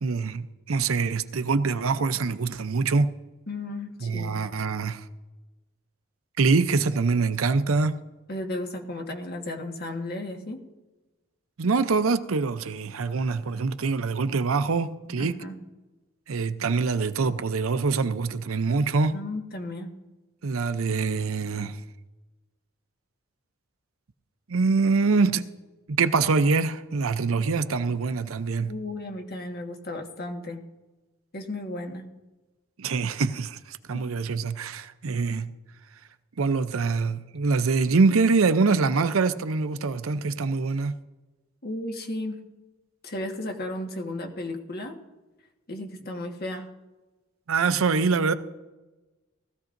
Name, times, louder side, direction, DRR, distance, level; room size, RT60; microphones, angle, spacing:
voice 1, 0.0-3.1 4.0-5.0 6.4-8.0 11.6-15.3 16.3-19.2 20.4-21.8 24.5-25.4 25.9-28.7 32.8-35.5 36.4-40.9 47.5-48.3, right 4 dB, 85° right, 0.6 m, -24 dB
voice 2, 3.5-4.3 8.3-10.6 15.2-15.6 19.1-19.9 28.7-30.6 31.3-32.0 41.6-42.4 43.0-44.9 45.7-46.7, left 1 dB, 50° left, 1.5 m, -34 dB
19.5 x 14.5 x 2.6 m
head